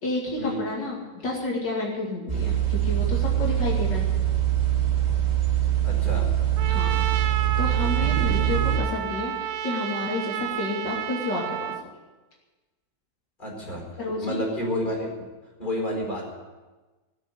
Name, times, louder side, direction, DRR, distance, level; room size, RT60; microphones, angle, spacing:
voice 1, 0.0-4.1 6.7-7.1 7.6-11.7 14.0-14.4, left 2 dB, 75° left, -3 dB, 3.1 m, -30 dB
sound 1, 2.3-8.8, right 11 dB, 25° right, 2.4 m, -23 dB
voice 2, 5.8-6.2 13.4-13.8 14.2-15.1 15.6-16.2, equal, 25° left, -2 dB, 4.6 m, -29 dB
Trumpet, 6.6-11.8, right 10 dB, 90° right, 1.4 m, -31 dB
19.5 x 6.8 x 9.9 m, 1.2 s
omnidirectional pair, 1.9 m